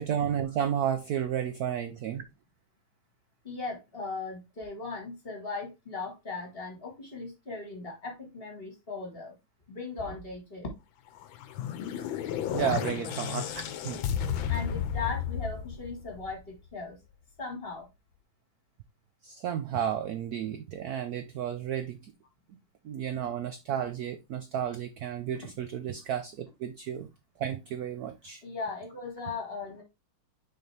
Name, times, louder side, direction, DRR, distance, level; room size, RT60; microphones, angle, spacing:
voice 1, 0.0-2.2 12.5-14.0 19.2-22.1 22.8-27.1 27.4-28.4, right 9 dB, 75° right, 0.8 m, -32 dB
voice 2, 3.4-9.4 9.7-10.8 12.5-12.7 14.5-17.0 17.4-17.9 28.4-29.8, left 4 dB, 30° left, 1.8 m, -38 dB
sound 1, 11.2-16.5, left 9 dB, 75° left, 1.4 m, -33 dB
6.6 x 4.5 x 3.3 m
omnidirectional pair, 2.3 m